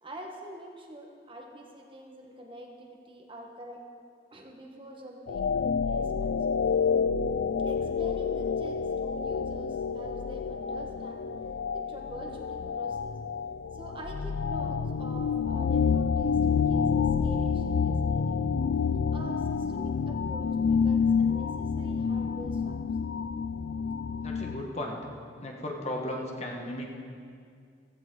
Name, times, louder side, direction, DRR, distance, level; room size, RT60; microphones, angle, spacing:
voice 1, 0.0-3.8 4.3-6.3 7.6-11.2 11.7-13.1 13.7-18.4 19.1-22.8 24.1-24.2, right 1 dB, 30° right, 1 dB, 1.4 m, -45 dB
sound 1, 5.3-24.6, left 6 dB, 65° left, 0.3 m, -28 dB
voice 2, 24.2-25.0 25.4-26.9, left 1 dB, 35° left, 0 dB, 1.5 m, -35 dB
15.5 x 15.0 x 3.9 m, 2.2 s
head